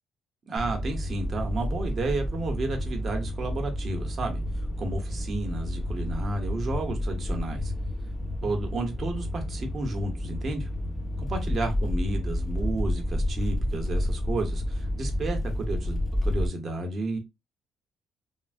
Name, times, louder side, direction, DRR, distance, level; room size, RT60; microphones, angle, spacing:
voice 1, 0.5-4.4 4.8-7.7 8.4-10.7 11.2-17.2, right 2 dB, 40° right, 0.8 m, -32 dB
sound 1, 0.6-16.5, left 1 dB, 15° left, 0.8 m, -30 dB
3.3 x 2.2 x 2.4 m
cardioid pair, 120°, 0 cm